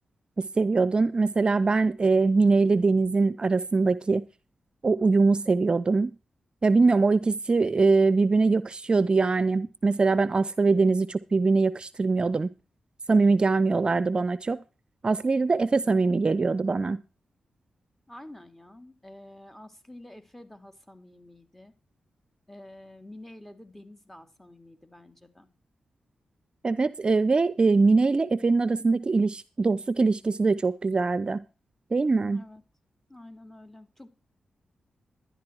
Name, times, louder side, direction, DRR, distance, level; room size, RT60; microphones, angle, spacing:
voice 1, 0.4-4.2 4.8-6.1 6.6-12.5 13.1-14.6 15.0-17.0 26.6-31.4 31.9-32.4, right 3 dB, 40° right, 17 dB, 0.6 m, -22 dB
voice 2, 18.1-21.7 22.5-25.5 32.3-32.6 33.1-34.1, left 1 dB, 10° left, 8 dB, 2.8 m, -48 dB
12.0 x 10.5 x 4.6 m, 0.31 s
supercardioid pair, 50°, 2 cm